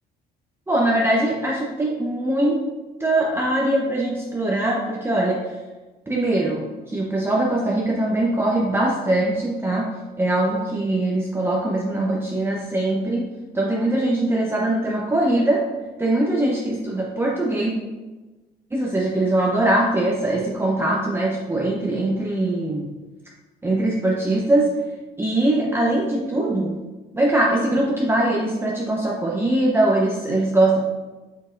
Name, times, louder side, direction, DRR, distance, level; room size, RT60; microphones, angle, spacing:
voice 1, 0.7-2.6 3.0-5.6 6.1-9.9 10.2-15.6 16.0-17.7 18.7-22.9 23.6-24.7 25.2-26.7 27.1-30.8, right 1 dB, 15° right, -3 dB, 0.8 m, -22 dB
6.6 x 5.8 x 2.5 m, 1.2 s
cardioid pair, 110°, 17 cm